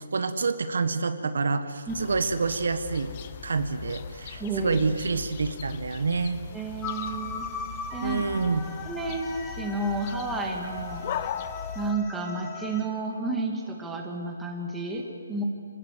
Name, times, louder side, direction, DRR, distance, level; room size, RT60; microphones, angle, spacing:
voice 1, 0.1-3.1 3.4-6.4 8.0-8.6, right 4 dB, 70° right, 9 dB, 1.5 m, -27 dB
sound 1, 1.9-11.9, left 8 dB, 25° left, 0.8 m, -39 dB
voice 2, 4.4-4.8 6.5-7.5 7.9-8.2 8.8-11.4 11.7-15.4, right 2 dB, 5° right, 0 dB, 1.9 m, -31 dB
sound 2, 6.8-12.9, left 5 dB, 10° left, 1.3 m, -39 dB
27.0 x 18.0 x 8.2 m, 2.4 s
hypercardioid pair, 170°, 0 cm